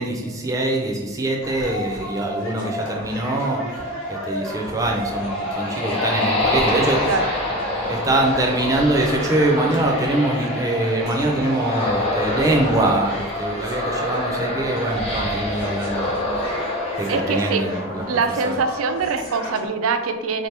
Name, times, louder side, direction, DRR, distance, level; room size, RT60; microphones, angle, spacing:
voice 1, 0.0-7.0 7.9-16.7 17.0-18.5, right 1 dB, 15° right, 0 dB, 0.5 m, -23 dB
sound 1, 1.4-19.7, equal, 90° left, 1.3 m, -32 dB
sound 2, 4.7-18.2, left 1 dB, 25° left, 0.8 m, -27 dB
voice 2, 17.1-17.6 18.1-20.5, right 4 dB, 80° right, 8 dB, 0.4 m, -23 dB
3.8 x 2.9 x 3.3 m, 1.1 s
head